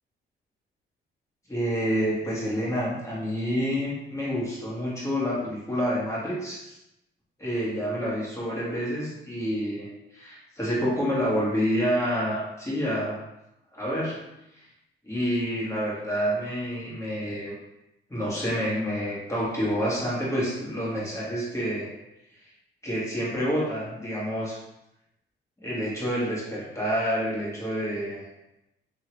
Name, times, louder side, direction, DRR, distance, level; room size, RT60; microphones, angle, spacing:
voice 1, 1.5-6.8 7.4-13.2 13.7-14.2 15.0-17.5 18.1-21.9 22.8-24.6 25.6-28.2, equal, 15° left, -7 dB, 1.4 m, -28 dB
2.8 x 2.8 x 3.0 m, 0.88 s
cardioid pair, 90°, 20 cm